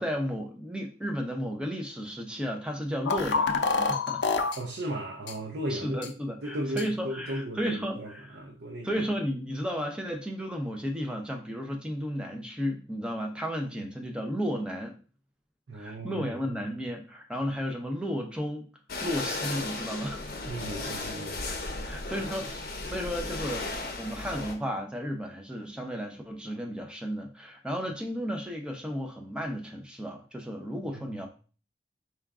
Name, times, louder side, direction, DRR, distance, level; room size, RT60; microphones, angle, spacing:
voice 1, 0.0-4.2 5.7-8.4 8.8-14.9 15.7-18.7 19.0-20.2 21.8-31.3, equal, 5° right, 0.6 m, -33 dB
sound 1, 3.1-4.6 5.3-5.4 6.0-6.1 6.8-6.9, left 4 dB, 90° left, 0.5 m, -27 dB
voice 2, 4.6-6.0 6.4-9.0 15.7-16.6 20.4-21.4 22.2-22.3 31.0-31.2, right 1 dB, 70° right, 0.6 m, -36 dB
sound 2, 18.9-24.5, left 2 dB, 55° left, 0.7 m, -35 dB
4.3 x 2.3 x 3.5 m
head